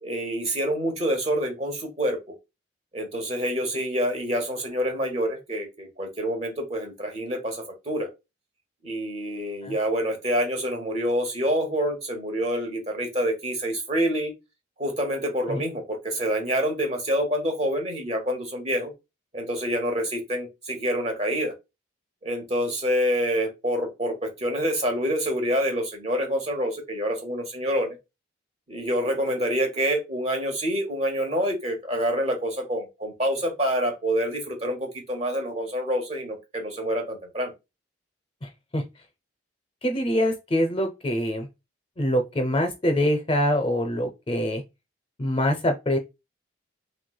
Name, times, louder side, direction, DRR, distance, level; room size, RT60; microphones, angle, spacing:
voice 1, 0.0-2.2 2.9-8.1 8.8-14.3 14.8-18.9 19.3-21.5 22.2-28.0 28.7-37.5, equal, 35° right, 1.0 m, -27 dB
voice 2, 38.4-38.8 39.8-41.5 42.0-44.6 45.2-46.0, equal, 25° left, 0.5 m, -24 dB
3.1 x 3.1 x 2.2 m
head